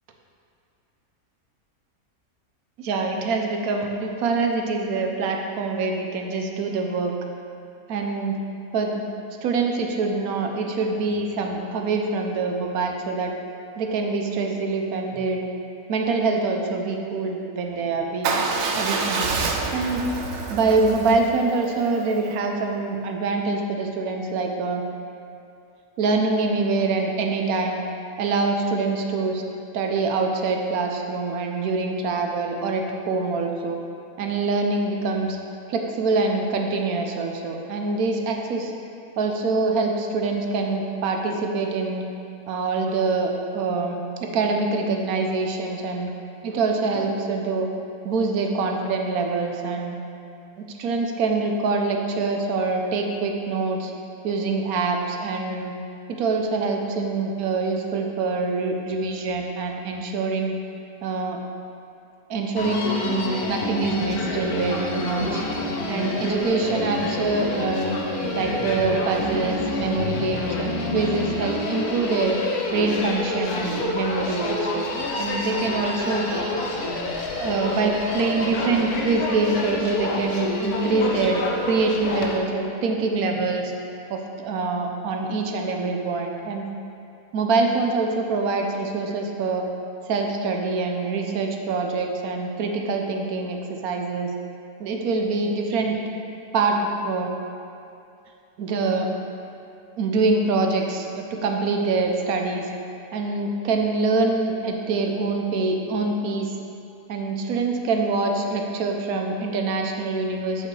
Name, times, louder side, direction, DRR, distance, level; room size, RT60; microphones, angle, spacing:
voice 1, 2.8-7.1 7.9-8.4 8.7-9.0 9.4-13.3 13.8-15.4 15.9-18.4 18.7-20.0 20.5-24.8 26.0-27.8 28.2-29.4 29.7-33.8 34.2-35.4 35.7-38.7 39.2-42.0 42.5-46.1 46.4-47.7 48.0-50.0 50.6-53.9 54.2-55.7 56.1-60.6 61.0-61.4 62.3-65.4 65.9-67.9 68.3-72.4 72.7-74.9 75.2-76.5 77.4-83.7 84.1-86.6 87.3-89.7 90.1-94.3 94.8-96.0 96.5-97.3 98.6-99.1 100.0-102.7 103.1-106.5 107.1-110.7, right 3 dB, 80° right, 2 dB, 1.2 m, -25 dB
Motorcycle / Engine starting / Idling, 18.2-22.3, right 4 dB, 60° right, 0.8 m, -28 dB
Human voice, 62.6-82.4, left 2 dB, 90° left, 1.3 m, -28 dB
7.7 x 6.5 x 3.2 m, 2.6 s
omnidirectional pair, 1.6 m